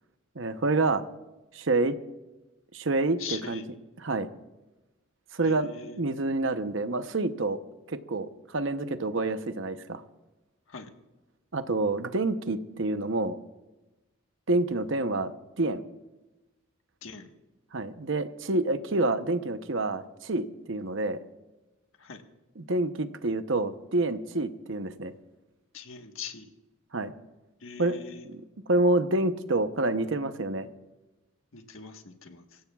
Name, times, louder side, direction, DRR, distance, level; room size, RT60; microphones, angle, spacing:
voice 1, 0.4-1.0 1.5-1.9 2.7-3.6 4.0-4.3 5.3-7.6 7.9-10.0 11.5-13.4 14.5-15.3 15.6-15.8 17.7-21.2 22.6-25.1 26.9-27.1 27.8-28.0 28.3-28.4 28.7-30.7, right 2 dB, 60° right, 10 dB, 0.8 m, -28 dB
voice 2, 3.2-3.7 5.4-6.0 10.7-10.9 17.0-17.3 22.0-22.2 25.7-26.5 27.6-28.3 31.5-32.6, left 6 dB, 70° left, 5 dB, 1.4 m, -41 dB
26.0 x 16.0 x 2.4 m, 1.1 s
head